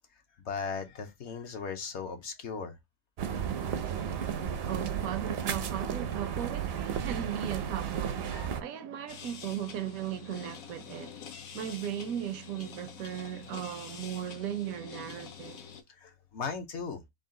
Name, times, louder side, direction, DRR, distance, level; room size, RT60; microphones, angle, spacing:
voice 1, 0.4-2.8 8.3-8.5 15.9-17.0, left 5 dB, 60° left, 0.9 m, -37 dB
sound 1, 3.2-8.6, right 8 dB, 60° right, 0.6 m, -33 dB
voice 2, 4.7-11.1 11.5-15.6, right 10 dB, 80° right, 1.1 m, -37 dB
sound 2, 9.1-15.8, left 7 dB, 80° left, 1.1 m, -47 dB
3.8 x 2.4 x 3.6 m
omnidirectional pair, 1.5 m